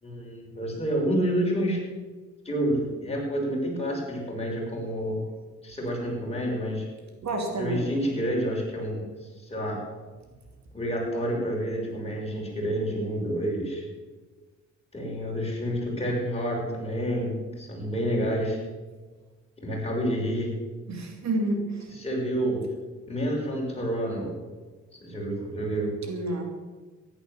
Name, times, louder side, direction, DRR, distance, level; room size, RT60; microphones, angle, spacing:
voice 1, 0.0-1.8 2.4-5.2 5.6-6.9 7.6-9.8 10.7-13.8 14.9-18.6 19.6-20.5 21.9-22.6 23.1-24.3 24.9-25.9, equal, 20° left, -2 dB, 6.1 m, -29 dB
voice 2, 7.2-7.9 20.9-21.9 26.0-26.4, right 1 dB, 65° right, 3 dB, 2.9 m, -29 dB
14.5 x 11.0 x 7.2 m, 1.3 s
cardioid pair, 95°, 29 cm